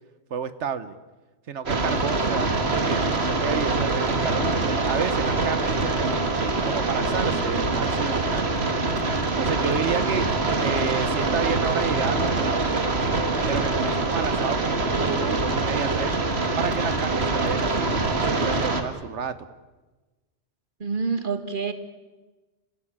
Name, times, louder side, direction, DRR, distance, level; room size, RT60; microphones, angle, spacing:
voice 1, 0.3-1.0 1.5-6.1 6.6-8.9 9.2-10.3 10.6-12.8 13.5-16.2 16.6-19.4, right 7 dB, 85° right, 13 dB, 1.4 m, -31 dB
sound 1, 1.7-18.8, right 3 dB, 65° right, 2.1 m, -24 dB
voice 2, 20.8-21.7, right 5 dB, 50° right, 8 dB, 1.9 m, -27 dB
30.0 x 15.5 x 8.8 m, 1.2 s
omnidirectional pair, 1.2 m